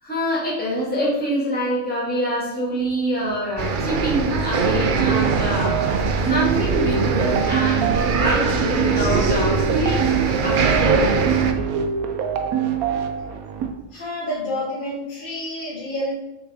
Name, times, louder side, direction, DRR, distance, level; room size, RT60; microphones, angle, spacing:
voice 1, 0.0-5.8 6.3-10.1 10.4-11.3, equal, 5° left, -7 dB, 1.9 m, -25 dB
sound 1, 3.6-11.5, right 4 dB, 55° right, 0.6 m, -21 dB
sound 2, 5.0-13.7, right 8 dB, 90° right, 1.1 m, -25 dB
voice 2, 13.9-16.1, left 1 dB, 35° left, -8 dB, 1.5 m, -28 dB
6.8 x 3.6 x 4.8 m, 1.0 s
omnidirectional pair, 1.5 m